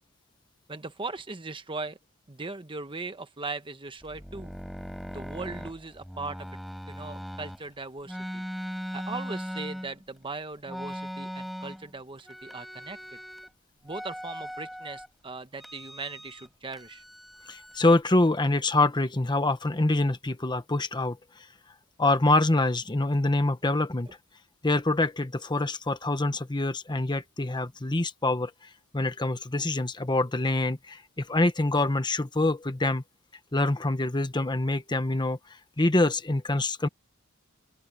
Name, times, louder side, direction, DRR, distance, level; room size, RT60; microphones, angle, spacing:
voice 1, 0.7-2.0 2.3-4.5 5.1-6.5 6.9-8.4 8.9-13.0 13.8-17.0, right 3 dB, 25° right, 1.1 m, -39 dB
sound 1, 4.0-7.6 8.1-10.2 10.7-11.9 12.2-13.5 13.9-15.1 15.6-16.5 16.7-17.9, equal, ahead, 4.0 m, -39 dB
voice 2, 17.5-21.5 22.0-24.1 24.6-28.5 28.9-33.0 33.5-36.9, left 2 dB, 20° left, 1.0 m, -25 dB
open air
head